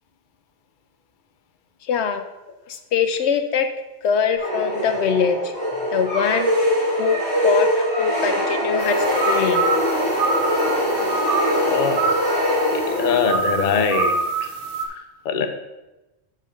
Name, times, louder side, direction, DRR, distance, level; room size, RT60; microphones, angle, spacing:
voice 1, 1.8-2.2 2.7-3.7 4.0-5.5 5.9-6.5 7.0-7.7 8.0-8.9 9.2-9.6, left 6 dB, 80° left, 7 dB, 0.9 m, -22 dB
sound 1, 4.4-13.5, left 1 dB, 40° right, 2.7 m, -22 dB
sound 2, 8.8-14.9, right 4 dB, 60° right, 0.9 m, -26 dB
voice 2, 11.6-12.1 12.7-14.5 14.9-15.5, left 6 dB, 55° left, 6 dB, 0.8 m, -23 dB
5.7 x 5.3 x 5.0 m, 1.0 s
omnidirectional pair, 1.1 m